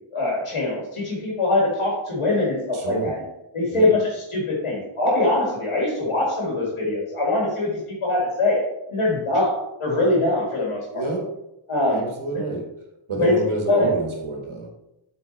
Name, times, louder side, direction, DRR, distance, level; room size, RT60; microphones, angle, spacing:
voice 1, 0.1-3.2 3.5-8.6 8.9-11.1 11.7-12.0 13.2-13.3 13.7-13.9, left 2 dB, 80° left, -3 dB, 2.3 m, -23 dB
voice 2, 2.7-3.2 3.7-3.9 10.9-11.3 11.8-12.7 13.1-14.7, right 2 dB, 75° right, 1 dB, 1.7 m, -28 dB
8.3 x 4.3 x 4.1 m, 0.88 s
wide cardioid pair, 80°, 49 cm